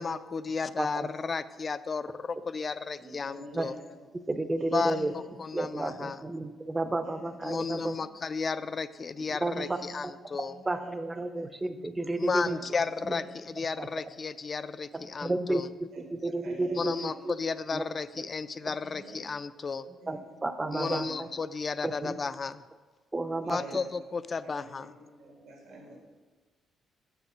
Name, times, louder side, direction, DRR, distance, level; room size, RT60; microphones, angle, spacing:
voice 1, 0.0-3.7 4.7-6.2 7.4-10.5 12.2-15.7 16.8-19.9 20.7-22.6 23.5-24.9, left 4 dB, 40° left, 14 dB, 0.3 m, -33 dB
voice 2, 0.8-1.1 3.5-3.7 4.3-5.1 5.5-7.9 9.4-9.8 10.7-12.6 13.8-13.9 15.2-17.1 17.7-17.8 20.1-21.3 21.8-22.1 23.1-23.6, right 2 dB, 20° right, 10 dB, 0.5 m, -31 dB
voice 3, 3.0-4.0 4.6-5.4 5.8-6.1 7.0-7.9 9.5-9.9 10.5-11.5 12.6-12.7 13.1-13.3 14.9-15.1 15.9-17.2 18.6-19.2 19.8-20.2 20.8-21.1 21.8-22.2 23.4-23.8 24.4-24.7 25.2-26.0, right 2 dB, 80° right, -1 dB, 1.7 m, -47 dB
6.9 x 3.9 x 6.0 m, 1.3 s
cardioid pair, 90°, 0 cm